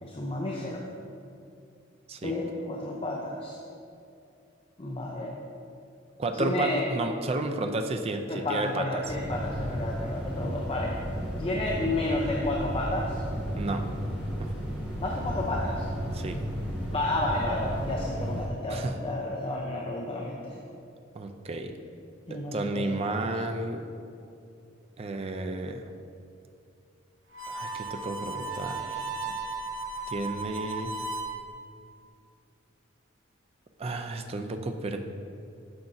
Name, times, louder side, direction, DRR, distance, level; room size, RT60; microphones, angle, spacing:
voice 1, 0.0-0.9 2.2-3.6 4.8-5.3 6.3-6.8 8.3-11.0 11.4-13.2 15.0-15.9 16.9-20.6 22.3-23.1, left 2 dB, 30° left, -2 dB, 0.6 m, -31 dB
voice 2, 6.2-9.0 13.6-13.8 14.4-14.5 16.1-16.4 18.7-19.0 21.1-21.7 22.3-23.8 25.0-25.8 27.5-29.3 30.1-30.9 33.8-35.0, right 2 dB, 30° right, 5 dB, 0.4 m, -32 dB
sound 1, 9.0-18.5, equal, 5° right, 1.3 m, -33 dB
Harmonica, 27.3-31.4, right 3 dB, 85° right, 0.8 m, -35 dB
9.5 x 6.0 x 2.6 m, 2.5 s
head